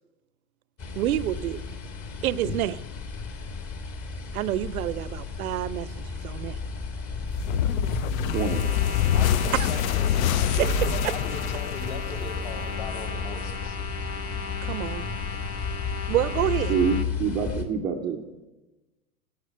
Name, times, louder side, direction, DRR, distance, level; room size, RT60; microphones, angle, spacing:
sound 1, 0.8-17.6, left 4 dB, 35° left, 1.5 m, -33 dB
voice 1, 1.0-1.6 2.2-2.8 4.3-5.9 6.2-6.6 9.5-9.7 10.5-11.1 14.6-15.1 16.1-16.8, right 13 dB, 75° right, 0.6 m, -28 dB
sound 2, 7.5-12.6, left 11 dB, 70° left, 0.5 m, -26 dB
sound 3, 8.2-17.1, left 5 dB, 85° left, 1.0 m, -36 dB
voice 2, 8.3-8.6 16.7-18.2, right 6 dB, 10° right, 0.3 m, -26 dB
voice 3, 9.1-10.2 10.5-13.8, left 4 dB, 55° left, 2.5 m, -39 dB
10.5 x 7.2 x 8.8 m
hypercardioid pair, 115°, 44 cm